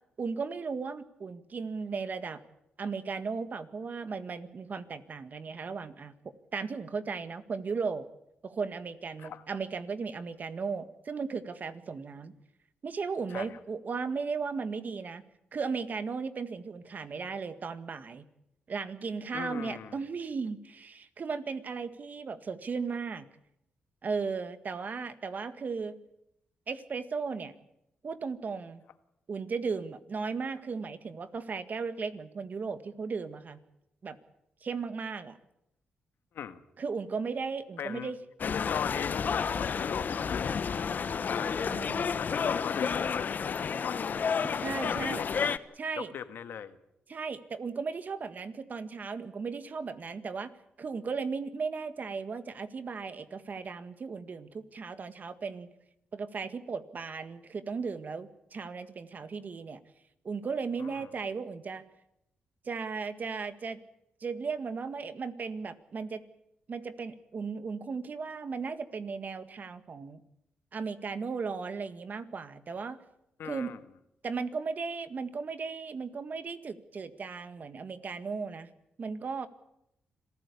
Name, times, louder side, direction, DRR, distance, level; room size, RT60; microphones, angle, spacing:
voice 1, 0.2-2.4 2.8-6.1 6.5-8.1 8.4-12.3 12.8-15.2 15.5-18.2 18.7-23.3 24.0-26.0 26.7-27.5 28.0-28.8 29.3-33.6 34.0-34.2 34.6-35.4 36.8-38.2 41.7-42.2 44.6-45.2 45.8-46.1 47.1-50.5 50.8-55.7 56.1-59.8 60.2-61.8 62.6-63.8 64.2-66.2 66.7-70.2 70.7-73.0 73.4-73.7 74.2-78.7 79.0-79.5, right 5 dB, 50° right, 10 dB, 1.8 m, -36 dB
voice 2, 19.3-20.0 36.3-36.6 37.8-38.1 38.4-40.7 41.2-41.7 42.1-44.4 44.8-45.3 46.0-46.8 60.8-61.1 73.4-73.8, left 8 dB, 75° left, 10 dB, 1.6 m, -39 dB
sound 1, 38.4-45.6, left 6 dB, 55° left, 1.0 m, -31 dB
26.5 x 15.0 x 8.5 m, 0.83 s
cardioid pair, 60°, 4 cm